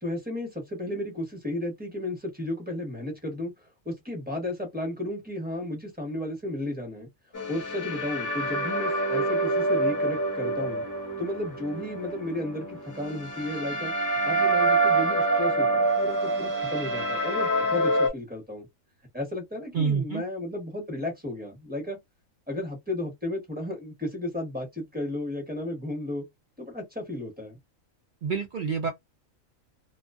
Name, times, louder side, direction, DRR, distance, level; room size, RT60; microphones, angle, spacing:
voice 1, 0.0-7.1 7.5-10.8 11.2-13.9 14.2-18.7 19.1-22.0 22.5-26.2 26.6-27.6, left 1 dB, 10° right, 0.8 m, -33 dB
sound 1, 7.3-18.1, right 2 dB, 25° left, 0.4 m, -26 dB
voice 2, 19.7-20.2 28.2-28.9, right 6 dB, 65° right, 0.5 m, -27 dB
2.3 x 2.2 x 2.4 m
omnidirectional pair, 1.4 m